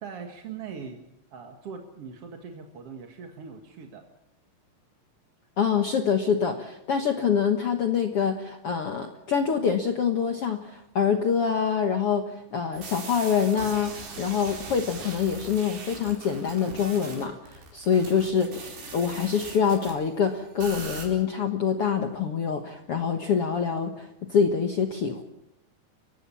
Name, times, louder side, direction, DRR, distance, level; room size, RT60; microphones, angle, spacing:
voice 1, 0.0-1.0 1.3-4.1, right 6 dB, 50° right, 4 dB, 1.8 m, -41 dB
voice 2, 5.6-25.2, left 7 dB, 80° left, 5 dB, 1.3 m, -25 dB
sound 1, 12.7-19.9 20.6-21.1, right 4 dB, 80° right, 6.7 m, -40 dB
30.0 x 15.5 x 7.1 m, 0.84 s
omnidirectional pair, 4.8 m